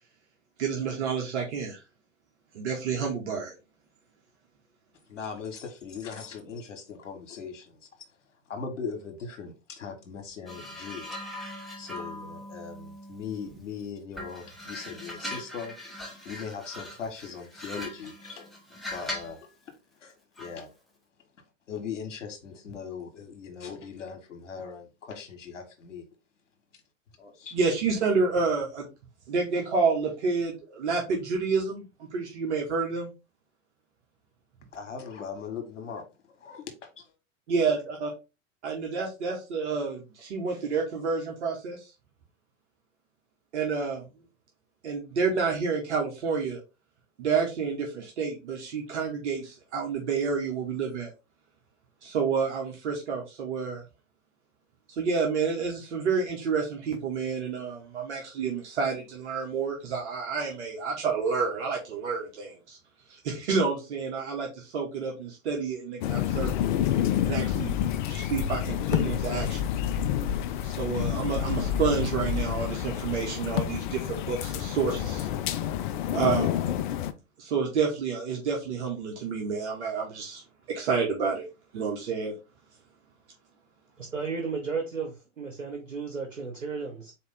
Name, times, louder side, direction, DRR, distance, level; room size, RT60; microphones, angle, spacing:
voice 1, 0.6-1.8 2.5-3.5 27.5-28.9 29.3-31.8 32.1-33.1 37.5-38.1 38.6-41.9 43.5-44.0 44.8-46.6 47.2-51.1 52.0-53.8 55.0-62.8 63.1-66.7 67.2-67.8 68.1-69.7 70.6-75.3 76.1-76.6 77.4-80.4 80.7-81.5 81.7-82.3, right 5 dB, 60° right, 1.3 m, -29 dB
voice 2, 5.1-7.7 8.5-11.1 11.8-15.7 16.2-18.5 18.9-19.4 20.0-20.1 20.4-20.7 21.7-26.0 27.2-27.5 34.7-36.0 36.4-36.7 37.0-37.1, left 6 dB, 70° left, 1.4 m, -39 dB
sound 1, 10.5-13.7 14.1-19.4 20.4-20.6, left 1 dB, ahead, 0.9 m, -41 dB
sound 2, 66.0-77.1, left 10 dB, 40° left, 0.4 m, -28 dB
voice 3, 84.0-87.1, right 5 dB, 85° right, 1.1 m, -34 dB
4.2 x 3.0 x 3.6 m
figure-of-eight pair, 100°, 38 cm